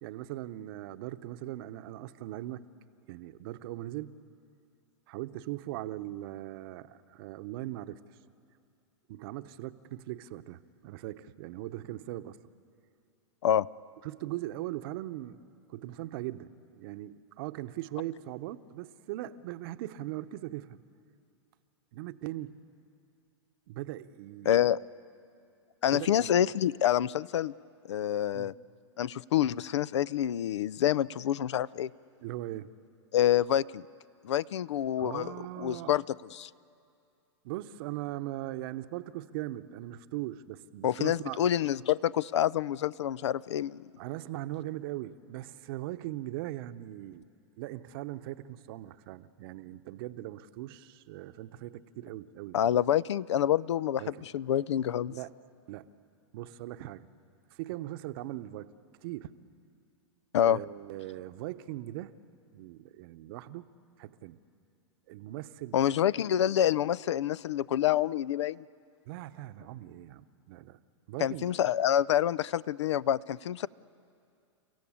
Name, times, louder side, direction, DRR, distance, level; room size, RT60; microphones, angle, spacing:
voice 1, 0.0-2.7 3.1-4.2 5.1-8.0 9.1-12.4 14.0-15.4 15.7-20.8 21.9-22.6 23.7-24.7 25.9-26.3 28.3-28.5 32.2-32.7 35.0-36.0 37.4-41.4 44.0-47.3 47.6-52.7 54.0-54.3 55.1-55.3 55.7-55.9 56.3-57.1 57.5-58.7 59.0-59.3 60.4-62.1 62.5-63.7 64.0-64.4 65.1-65.8 69.1-70.8 71.1-71.5, right 15 dB, 55° right, 12 dB, 0.9 m, -40 dB
voice 2, 24.5-24.8 25.8-27.5 27.9-28.5 29.0-31.9 33.1-33.9 34.2-36.0 36.3-36.5 40.8-43.8 52.5-54.0 54.3-55.1 60.3-60.6 65.7-68.6 71.2-73.7, left 11 dB, 75° left, 22 dB, 0.5 m, -27 dB
30.0 x 15.5 x 8.7 m, 2.5 s
hypercardioid pair, 115°, 15 cm